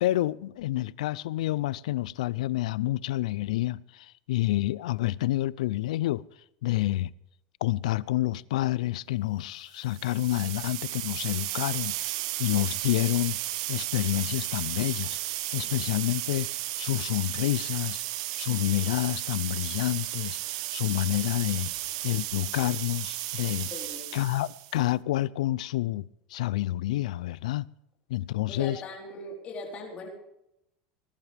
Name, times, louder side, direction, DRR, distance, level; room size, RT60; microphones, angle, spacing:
voice 1, 0.0-6.2 6.6-7.1 7.6-13.4 13.7-15.2 15.5-16.5 16.8-18.0 18.4-21.7 22.0-23.7 24.1-26.0 26.3-27.7 28.1-28.8, left 16 dB, 90° left, 0.4 m, -28 dB
sound 1, 9.8-24.8, right 16 dB, 70° right, 1.1 m, -34 dB
voice 2, 23.7-24.2 28.5-30.1, left 2 dB, 35° left, 3.9 m, -40 dB
20.0 x 12.0 x 3.4 m
supercardioid pair, 130°, 4 cm